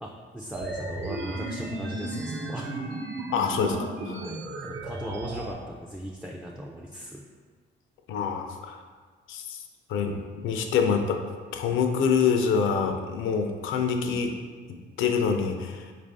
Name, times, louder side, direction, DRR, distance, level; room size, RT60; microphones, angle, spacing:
voice 1, 0.0-2.7 4.2-7.2, right 1 dB, 5° right, -1 dB, 0.3 m, -38 dB
sound 1, 0.5-5.5, right 2 dB, 75° right, 0.8 m, -34 dB
voice 2, 3.3-4.2 8.1-8.8 9.3-9.6 9.9-11.2 11.5-14.4 14.7-15.9, left 6 dB, 80° left, 5 dB, 0.5 m, -26 dB
4.5 x 2.5 x 3.4 m, 1.5 s
cardioid pair, 90°, 20 cm